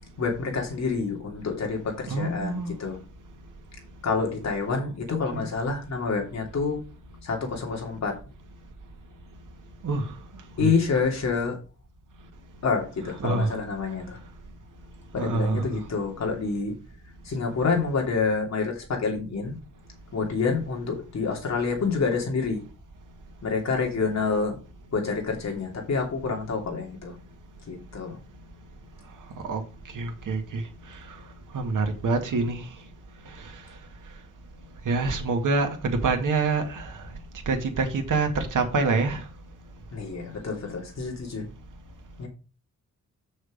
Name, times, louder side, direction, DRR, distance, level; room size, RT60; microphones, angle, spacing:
voice 1, 0.2-3.0 4.0-6.8 7.2-8.2 10.6-11.6 12.6-14.2 15.1-16.7 17.2-19.6 20.1-22.6 23.4-24.6 24.9-27.1 27.7-28.2 39.9-41.4 42.2-42.3, left 4 dB, 60° left, 2.8 m, -27 dB
voice 2, 2.1-2.7 5.3-5.5 9.8-10.1 10.6-10.7 13.2-13.5 15.2-15.8 29.5-29.6 29.9-30.6 31.5-32.6 34.9-37.0 37.5-39.2, right 3 dB, 80° right, 1.9 m, -26 dB
6.8 x 6.3 x 5.2 m
wide cardioid pair, 165°, 31 cm